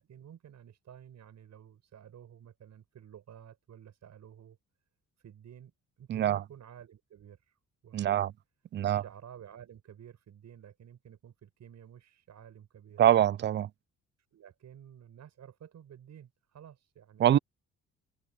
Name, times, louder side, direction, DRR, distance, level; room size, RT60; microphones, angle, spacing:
voice 1, 0.0-4.6 5.2-7.6 7.8-8.2 8.9-13.0 14.3-17.3, right 9 dB, 65° right, 7.1 m, -52 dB
voice 2, 6.1-6.4 7.9-8.3 8.7-9.0 13.0-13.7 17.2-17.4, right 11 dB, 40° right, 0.4 m, -24 dB
cardioid pair, 90°, 30 cm